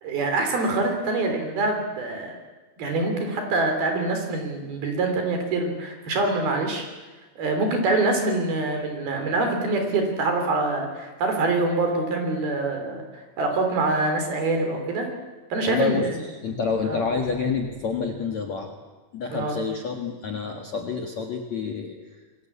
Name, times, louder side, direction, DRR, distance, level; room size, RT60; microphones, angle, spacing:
voice 1, 0.0-2.4 2.8-6.9 7.4-15.1 15.5-16.2 16.8-17.0 19.3-19.6, right 2 dB, 55° right, 4 dB, 5.2 m, -25 dB
voice 2, 15.7-18.7 19.1-22.5, left 5 dB, 55° left, 2 dB, 2.2 m, -28 dB
27.5 x 22.5 x 8.5 m, 1.3 s
omnidirectional pair, 5.6 m